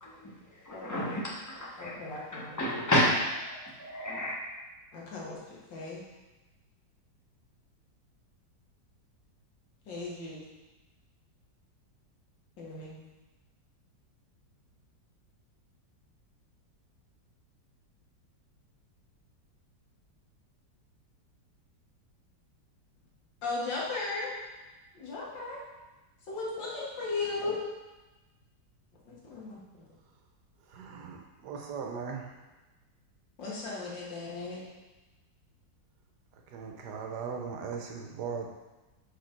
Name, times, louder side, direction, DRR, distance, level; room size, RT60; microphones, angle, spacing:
voice 1, 0.0-4.3, left 1 dB, 15° left, -5 dB, 0.9 m, -31 dB
voice 2, 0.7-1.1 1.8-2.6 4.9-6.0 9.9-10.4 12.6-13.0 23.4-24.3 24.9-25.6 26.3-27.6 29.1-29.9 33.4-34.6, left 3 dB, 90° left, -4 dB, 2.1 m, -37 dB
voice 3, 30.7-32.3 36.3-38.5, right 6 dB, 70° right, 3 dB, 1.2 m, -39 dB
5.1 x 4.9 x 4.4 m, 1.1 s
omnidirectional pair, 1.9 m